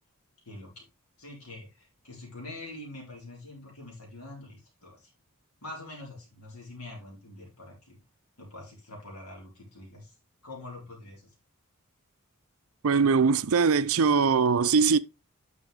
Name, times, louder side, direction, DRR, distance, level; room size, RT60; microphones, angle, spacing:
voice 1, 0.4-0.8 1.2-5.1 5.6-8.0 8.4-10.1 10.4-11.3, left 2 dB, 85° left, 4.1 m, -45 dB
voice 2, 12.8-15.0, right 5 dB, 75° right, 0.5 m, -22 dB
9.5 x 6.3 x 3.4 m
head